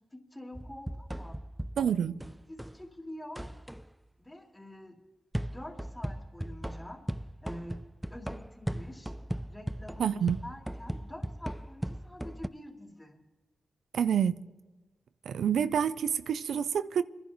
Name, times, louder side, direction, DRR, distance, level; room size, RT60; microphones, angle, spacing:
voice 1, 0.1-1.4 1.9-3.4 4.2-4.9 5.5-7.0 7.4-7.8 8.1-9.1 9.5-13.2, left 1 dB, 15° left, 3.2 m, -46 dB
sound 1, 0.5-2.8 3.3-3.9 5.3-12.5, right 1 dB, 5° right, 0.4 m, -38 dB
voice 2, 1.8-2.2 10.0-10.4 13.9-14.4 15.3-17.0, right 8 dB, 85° right, 0.4 m, -27 dB
27.5 x 11.0 x 3.1 m
cardioid pair, 65°, 0 cm